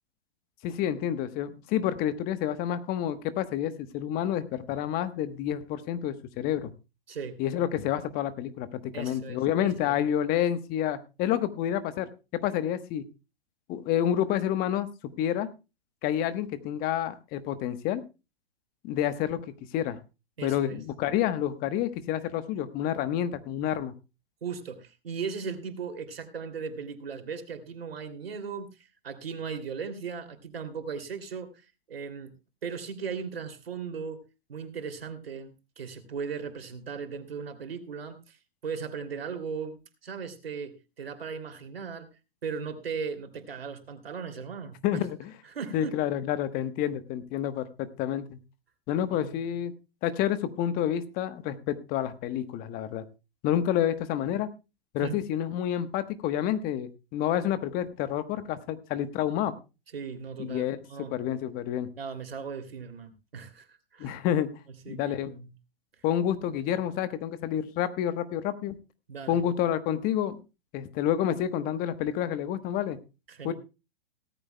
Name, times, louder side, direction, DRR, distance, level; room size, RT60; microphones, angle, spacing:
voice 1, 0.6-6.7 7.4-13.0 13.7-14.9 15.2-15.5 16.0-18.0 18.8-19.4 19.7-20.0 20.4-23.9 44.8-45.3 45.7-48.4 48.9-49.7 50.0-53.0 53.4-54.5 54.9-59.6 60.4-61.9 64.0-64.5 64.9-65.3 66.0-68.7 69.3-70.4 70.7-73.0 73.4-73.5, left 10 dB, 30° left, 11 dB, 1.1 m, -29 dB
voice 2, 7.1-7.4 8.9-10.0 20.4-20.8 24.4-32.3 32.6-34.2 34.5-38.4 38.6-42.1 42.4-45.0 45.4-46.0 49.1-49.3 55.0-55.2 59.9-61.1 62.0-64.2 64.8-65.5 69.1-69.4 73.3-73.5, right 6 dB, 75° right, 8 dB, 2.8 m, -37 dB
17.5 x 14.0 x 2.2 m, 0.29 s
hypercardioid pair, 120°, 30 cm